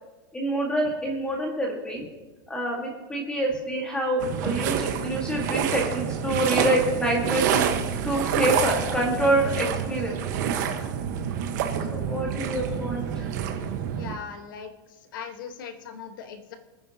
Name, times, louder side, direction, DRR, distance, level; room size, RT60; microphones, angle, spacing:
voice 1, 0.3-2.0 2.5-7.7 8.0-10.2 11.9-13.4, right 1 dB, 5° left, 0 dB, 1.8 m, -26 dB
sound 1, 4.2-14.2, right 8 dB, 50° right, 1.3 m, -28 dB
voice 2, 14.0-14.7 15.1-16.6, left 6 dB, 60° left, 6 dB, 1.5 m, -39 dB
27.5 x 10.0 x 2.9 m, 1.2 s
supercardioid pair, 175°, 12 cm